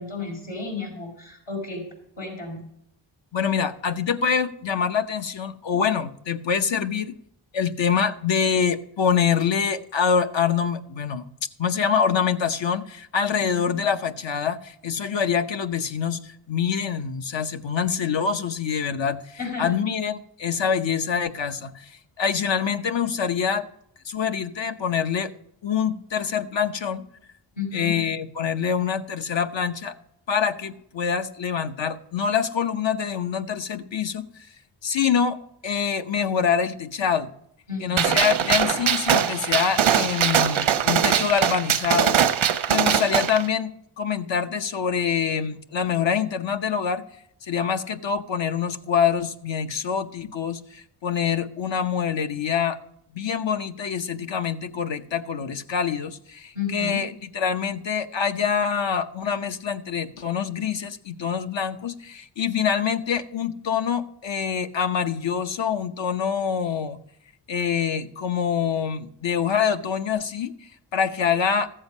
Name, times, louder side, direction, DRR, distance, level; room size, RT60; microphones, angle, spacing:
voice 1, 0.0-1.8 2.2-2.6 13.5-13.6 19.4-19.8 27.6-27.9 37.7-38.1 56.5-57.0, left 4 dB, 85° left, -2 dB, 5.3 m, -32 dB
voice 2, 3.3-7.2 7.5-11.3 11.6-23.6 24.0-25.3 25.6-27.0 27.7-30.0 30.3-34.5 34.8-35.4 35.6-37.3 37.8-47.0 47.4-52.8 53.1-67.0 67.5-71.7, left 7 dB, 70° left, 8 dB, 0.9 m, -25 dB
Gunshot gunfire, 38.0-43.4, right 8 dB, 90° right, 0.8 m, -21 dB
14.5 x 7.9 x 5.4 m, 0.73 s
wide cardioid pair, 70°, 46 cm